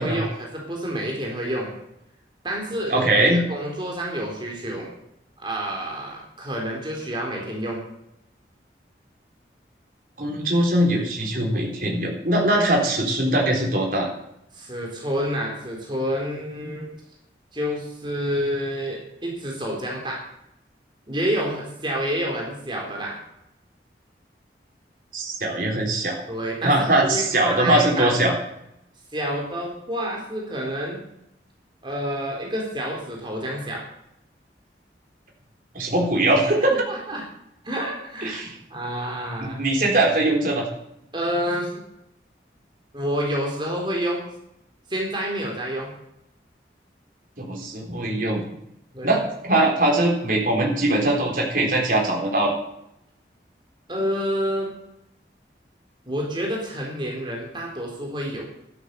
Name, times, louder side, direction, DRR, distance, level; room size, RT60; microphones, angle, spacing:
voice 1, 0.0-1.7 2.4-4.9 5.4-7.8 14.5-16.9 17.5-20.2 21.1-23.2 26.3-28.1 29.1-31.0 31.8-33.8 36.7-37.2 37.6-38.4 38.7-39.6 41.1-41.8 42.9-44.3 44.9-45.9 48.9-49.2 53.9-54.7 56.1-58.4, equal, 25° right, -1 dB, 3.9 m, -28 dB
voice 2, 2.9-3.4 10.2-14.1 25.1-26.2 26.6-28.3 35.7-36.8 38.2-38.5 39.6-40.7 47.4-48.4 49.0-52.6, right 1 dB, 50° right, 0 dB, 3.9 m, -21 dB
13.0 x 12.0 x 6.8 m, 0.80 s
head